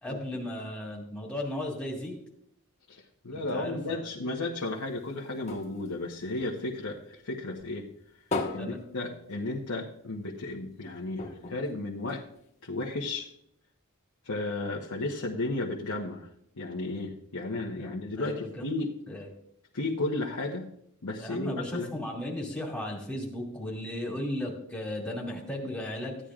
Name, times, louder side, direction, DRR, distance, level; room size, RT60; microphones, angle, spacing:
voice 1, 0.0-2.2 3.3-4.0 8.6-8.8 17.8-18.7 19.1-19.3 21.2-26.2, left 1 dB, 5° left, -3 dB, 2.4 m, -36 dB
voice 2, 2.9-7.9 8.5-12.2 12.6-13.3 14.2-16.3 16.6-18.9 19.7-20.7 21.0-21.9, left 2 dB, 90° left, -2 dB, 1.1 m, -34 dB
sound 1, 4.5-7.2 7.6-9.8 10.2-10.3 10.5-10.7 11.1-12.7 13.3-13.4, left 3 dB, 30° left, 1.4 m, -38 dB
15.0 x 10.0 x 2.5 m, 0.74 s
head